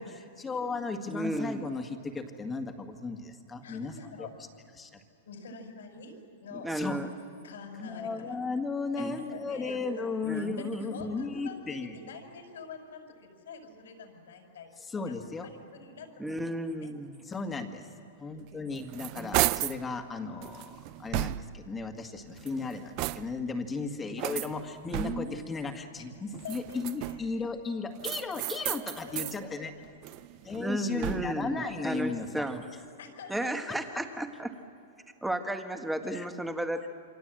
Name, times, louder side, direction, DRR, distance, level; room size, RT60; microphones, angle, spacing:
voice 1, 0.0-4.3 4.8-5.0 6.7-7.0 7.8-12.0 14.9-15.5 17.3-17.9 18.2-29.7 30.4-32.5 33.7-33.8 36.1-36.3, left 4 dB, 15° left, 5 dB, 1.9 m, -35 dB
voice 2, 1.1-1.7 6.5-7.1 9.0-9.2 10.2-10.7 16.2-17.1 18.7-18.9 19.2-19.4 24.8-25.6 30.6-32.6 33.3-34.5 35.2-36.9, right 1 dB, 5° right, 6 dB, 1.5 m, -34 dB
voice 3, 3.6-4.3 5.3-6.7 7.4-8.3 9.0-14.7 15.1-15.2 15.4-16.9 17.2-17.4 18.2-18.5 22.2-22.5 26.0-26.1 26.4-27.5 29.0-29.6 30.3-30.5 33.0-33.9, left 5 dB, 90° left, 3 dB, 5.5 m, -47 dB
sound 1, 18.5-19.9 20.4-21.7 22.3-23.5 24.2-25.4 26.3-27.4 28.0-29.4 29.8-31.5, right 17 dB, 40° right, 0.5 m, -34 dB
28.0 x 24.5 x 7.7 m, 2.6 s
hypercardioid pair, 140°, 0 cm